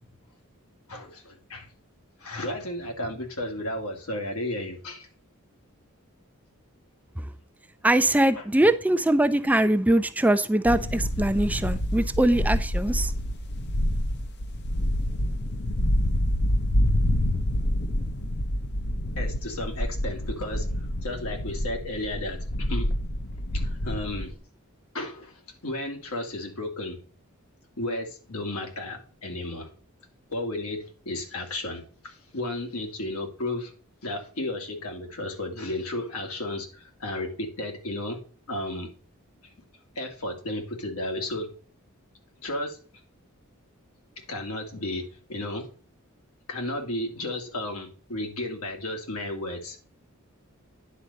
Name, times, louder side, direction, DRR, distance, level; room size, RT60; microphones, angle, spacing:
voice 1, 0.9-1.7 2.2-5.1 8.3-8.7 19.2-20.7 21.0-22.9 23.5-24.3 24.9-27.0 27.8-29.7 30.3-33.7 34.0-38.2 38.5-38.9 39.4-39.5 40.0-41.5 42.4-42.8 44.3-45.7 46.5-49.8, left 1 dB, 85° left, 2.3 m, -33 dB
voice 2, 7.8-13.1, right 1 dB, 5° right, 0.4 m, -22 dB
sound 1, 10.7-24.3, left 1 dB, 50° left, 0.8 m, -27 dB
10.0 x 4.2 x 6.4 m
head